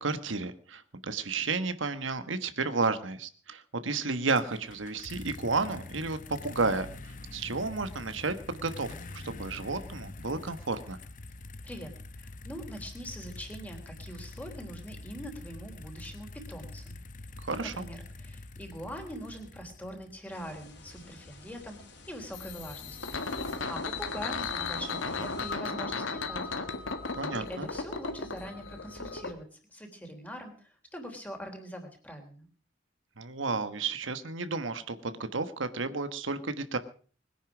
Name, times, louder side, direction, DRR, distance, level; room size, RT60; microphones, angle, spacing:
voice 1, 0.0-11.0 17.4-17.8 27.1-27.7 33.2-36.8, right 3 dB, 80° right, 10 dB, 1.4 m, -32 dB
sound 1, 4.4-20.3, left 2 dB, 45° left, 0.9 m, -45 dB
voice 2, 11.6-17.0 17.6-21.8 22.1-26.5 27.3-32.5, equal, 10° left, 4 dB, 3.5 m, -43 dB
sound 2, 20.3-25.5, left 2 dB, 60° left, 3.9 m, -51 dB
sound 3, 22.3-29.3, left 4 dB, 90° left, 2.0 m, -35 dB
21.0 x 10.0 x 6.1 m, 0.43 s
head